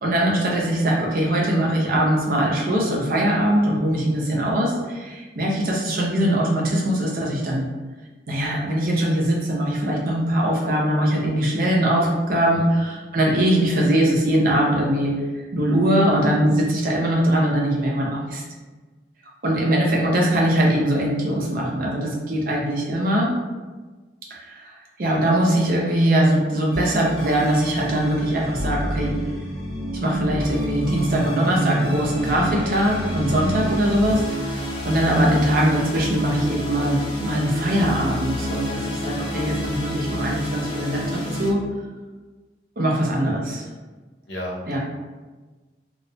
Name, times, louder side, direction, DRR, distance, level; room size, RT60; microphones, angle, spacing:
voice 1, 0.0-7.6 8.3-15.1 15.5-18.4 19.4-23.3 24.3-24.7 25.0-29.1 30.0-41.6 42.8-43.6 44.7-44.8, right 1 dB, 50° right, -2 dB, 0.5 m, -21 dB
sound 1, 26.7-41.5, equal, 25° left, 0.5 m, -29 dB
voice 2, 44.3-44.8, equal, 70° left, -2 dB, 0.6 m, -33 dB
2.3 x 2.1 x 2.6 m, 1.3 s
head